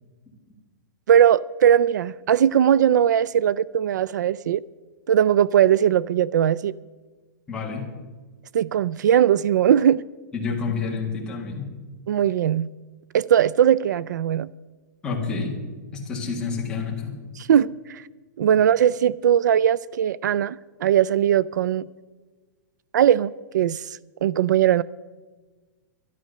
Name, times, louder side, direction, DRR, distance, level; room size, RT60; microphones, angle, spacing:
voice 1, 1.1-4.6 5.1-6.7 8.5-10.0 12.1-12.7 13.1-14.5 17.4-18.0 18.4-21.9 22.9-24.8, right 9 dB, 70° right, 0.3 m, -19 dB
voice 2, 7.5-7.8 10.3-11.7 15.0-15.5 15.9-17.2, left 5 dB, 10° left, 1.8 m, -28 dB
12.5 x 11.0 x 6.6 m
supercardioid pair, 180°, 10 cm